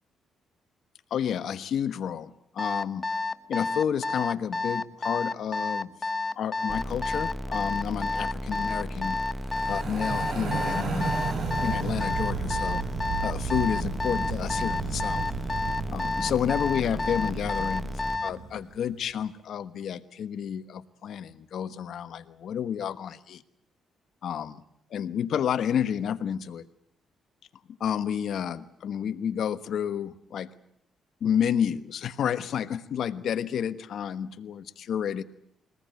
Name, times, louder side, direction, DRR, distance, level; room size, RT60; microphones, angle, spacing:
voice 1, 1.1-3.1 3.5-5.9 6.4-9.2 9.7-11.3 11.6-12.8 13.2-15.2 15.9-23.4 24.2-24.6 24.9-26.7 27.8-30.5 31.2-35.2, left 8 dB, 65° left, 12 dB, 1.3 m, -30 dB
Alarm, 2.6-18.4, left 3 dB, 25° left, 1.1 m, -30 dB
sound 1, 6.7-18.2, equal, 10° right, 0.9 m, -35 dB
sound 2, 9.4-18.7, right 5 dB, 55° right, 6.4 m, -34 dB
22.0 x 19.5 x 9.5 m, 0.73 s
cardioid pair, 90°, 0 cm